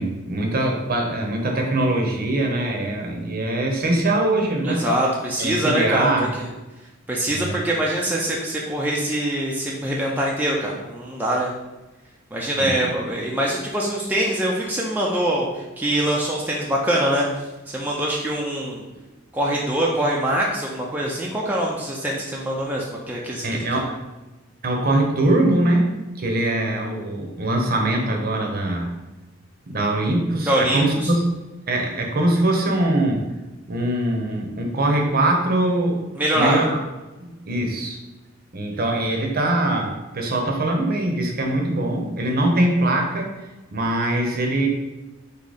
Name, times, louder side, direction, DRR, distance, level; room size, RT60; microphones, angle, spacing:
voice 1, 0.0-4.8 5.4-6.3 7.3-7.6 12.6-12.9 23.4-23.9 24.6-25.9 26.2-28.9 29.7-31.2 31.7-33.2 33.7-36.0 36.3-36.8 37.2-38.0 38.5-43.3 43.7-44.7, right 1 dB, 45° right, 2 dB, 0.7 m, -22 dB
voice 2, 4.6-6.1 7.1-11.5 12.3-17.3 17.7-18.8 19.3-23.8 30.5-31.1 36.2-36.6, right 1 dB, 10° right, -4 dB, 0.4 m, -23 dB
4.8 x 2.7 x 4.0 m, 1.1 s
head